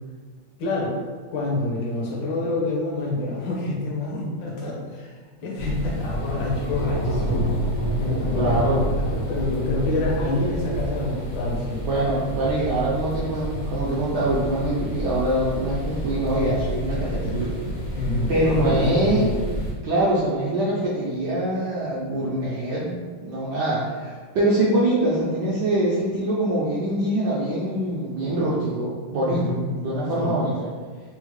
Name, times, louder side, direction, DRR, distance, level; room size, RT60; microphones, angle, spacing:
voice 1, 0.6-0.9 1.3-5.2 5.4-7.5 8.0-8.7 9.1-11.9 17.9-19.3 29.3-29.7 30.2-30.3, left 2 dB, 70° left, -3 dB, 1.4 m, -27 dB
sound 1, 5.6-19.7, equal, 90° left, 0.5 m, -28 dB
voice 2, 8.3-8.9 11.8-17.5 18.3-19.2 19.8-29.4 29.8-30.7, right 1 dB, 75° right, -7 dB, 1.0 m, -24 dB
4.4 x 2.1 x 3.0 m, 1.5 s
omnidirectional pair, 2.4 m